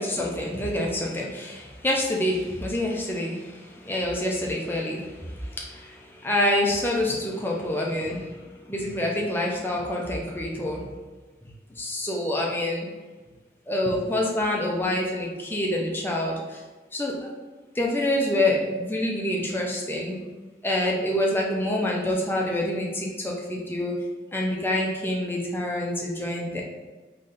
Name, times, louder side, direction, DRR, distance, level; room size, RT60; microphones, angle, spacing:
voice 1, 0.0-8.3 8.7-10.8 11.8-12.9 13.7-16.6 16.9-17.1 17.7-20.2 20.6-23.9 24.3-26.6, left 1 dB, 10° left, -2 dB, 0.6 m, -27 dB
4.0 x 3.2 x 3.9 m, 1.3 s
head